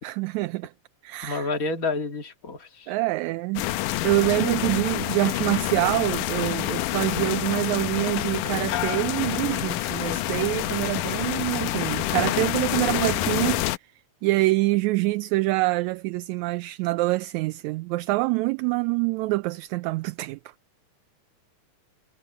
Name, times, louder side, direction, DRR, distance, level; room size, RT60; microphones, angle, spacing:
voice 1, 0.0-0.7 1.0-1.5 2.9-3.6 4.0-13.7 14.2-20.4, right 20 dB, 80° right, 1.8 m, -25 dB
voice 2, 1.2-3.0 4.3-4.8, left 3 dB, 30° left, 1.9 m, -30 dB
sound 1, 3.6-13.8, left 16 dB, 85° left, 2.2 m, -27 dB
sound 2, 8.7-10.4 10.8-11.4, left 12 dB, 70° left, 2.3 m, -36 dB
omnidirectional pair, 3.6 m